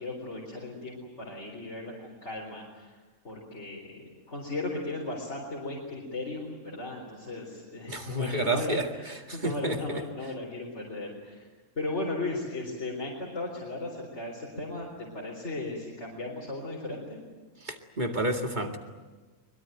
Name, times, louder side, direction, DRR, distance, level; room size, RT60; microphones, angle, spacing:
voice 1, 0.0-3.0 3.2-11.5 11.8-17.0, left 2 dB, 60° left, -2 dB, 4.5 m, -36 dB
voice 2, 7.9-8.9 9.3-10.0 17.7-18.8, right 1 dB, 35° right, 4 dB, 2.2 m, -30 dB
23.5 x 22.0 x 9.1 m, 1.3 s
omnidirectional pair, 1.3 m